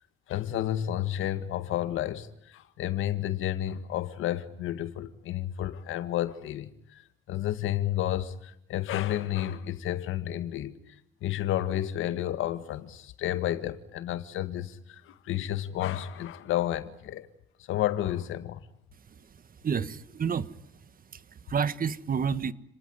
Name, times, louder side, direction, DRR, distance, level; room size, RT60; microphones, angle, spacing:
voice 1, 0.3-7.0 7.3-10.7 11.2-17.3 17.7-18.6, left 12 dB, 85° left, 1.9 m, -31 dB
voice 2, 19.1-22.5, right 6 dB, 45° right, 1.5 m, -31 dB
30.0 x 19.5 x 9.6 m
cardioid pair, 90°, 20 cm